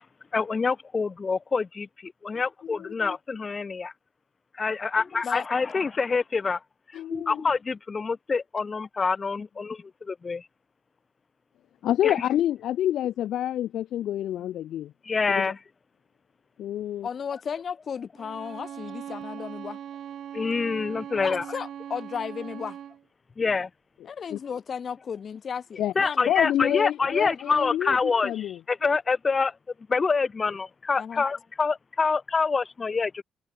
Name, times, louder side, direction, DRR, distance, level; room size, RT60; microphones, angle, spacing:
voice 1, 0.3-3.9 4.5-10.5 12.0-12.3 15.0-15.6 20.3-21.6 23.4-23.7 25.9-29.6 29.9-33.2, left 4 dB, 35° left, 1.7 m, -26 dB
voice 2, 7.0-7.4 11.8-14.9 15.4-15.5 16.6-17.1 24.3-24.4 25.8-25.9 26.3-28.0 28.2-28.5, left 12 dB, 75° left, 0.6 m, -27 dB
voice 3, 17.0-19.8 21.2-22.8 24.1-26.3 31.0-31.2, left 7 dB, 50° left, 1.8 m, -34 dB
Bowed string instrument, 18.2-23.0, right 9 dB, 65° right, 0.8 m, -40 dB
cardioid pair, 90°, 0 cm